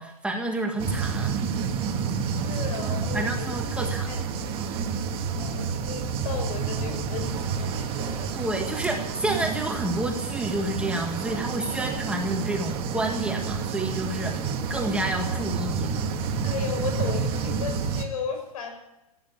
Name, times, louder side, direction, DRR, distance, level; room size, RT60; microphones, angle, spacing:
voice 1, 0.0-1.4 3.1-4.1 8.3-14.4 14.7-16.0, right 1 dB, 5° right, 2 dB, 1.6 m, -29 dB
sound 1, 0.8-18.1, right 6 dB, 30° right, 1.7 m, -29 dB
voice 2, 2.2-4.2 5.3-8.4 16.4-18.7, left 6 dB, 65° left, 4 dB, 6.5 m, -35 dB
15.5 x 9.4 x 9.8 m, 0.92 s
hypercardioid pair, 140°, 20 cm